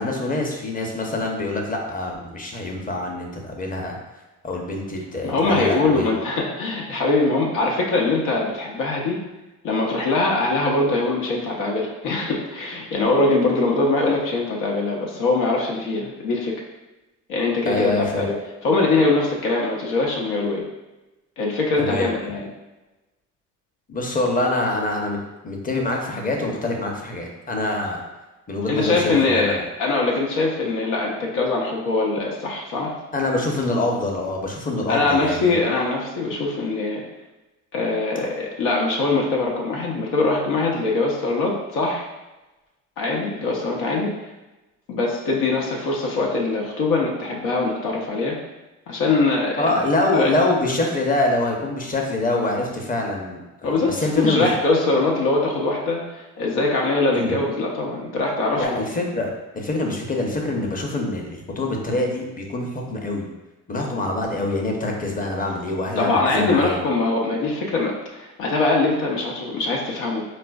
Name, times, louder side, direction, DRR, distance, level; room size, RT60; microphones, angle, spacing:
voice 1, 0.0-4.0 4.4-6.1 17.7-18.3 21.8-22.1 23.9-25.2 25.4-28.0 28.5-29.6 33.1-35.6 49.6-54.5 57.1-57.4 58.6-63.3 63.7-66.8, left 2 dB, 25° left, 1 dB, 0.7 m, -25 dB
voice 2, 5.2-9.2 9.6-16.6 17.3-18.3 18.6-20.6 21.4-22.5 28.7-32.9 34.9-37.0 37.7-42.1 43.0-44.2 44.9-48.4 48.9-49.8 50.1-50.3 53.6-58.8 66.0-70.2, left 3 dB, 90° left, -2 dB, 0.7 m, -22 dB
4.0 x 2.4 x 2.3 m, 1.1 s
cardioid pair, 85°, 31 cm